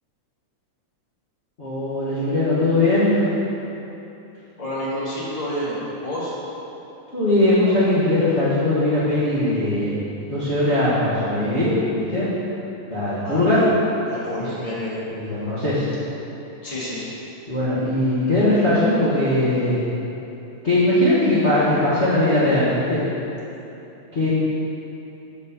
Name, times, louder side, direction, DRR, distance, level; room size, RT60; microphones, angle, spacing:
voice 1, 1.6-3.3 7.1-9.9 10.3-12.3 12.9-13.6 15.1-15.9 17.5-19.8 20.6-23.0 24.1-24.3, left 1 dB, 90° left, -11 dB, 0.6 m, -20 dB
voice 2, 4.6-6.3 13.2-13.6 14.1-15.0 16.6-17.1, equal, 20° left, -9 dB, 0.9 m, -29 dB
8.1 x 4.1 x 6.9 m, 3.0 s
omnidirectional pair, 3.7 m